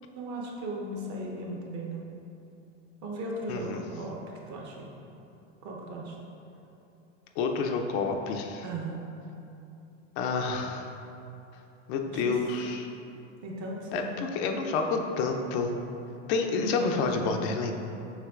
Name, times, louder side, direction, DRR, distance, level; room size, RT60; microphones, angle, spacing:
voice 1, 0.1-2.0 3.0-4.2 4.5-4.9 5.6-6.2 8.6-9.0 12.1-12.4 13.4-14.2 16.6-17.6, right 1 dB, 50° right, -1 dB, 0.9 m, -37 dB
voice 2, 3.5-3.8 7.4-8.6 10.2-10.9 11.9-12.9 13.9-15.8 16.3-17.7, left 4 dB, 55° left, 4 dB, 0.5 m, -29 dB
6.5 x 2.8 x 2.4 m, 2.8 s
hypercardioid pair, 100°, 38 cm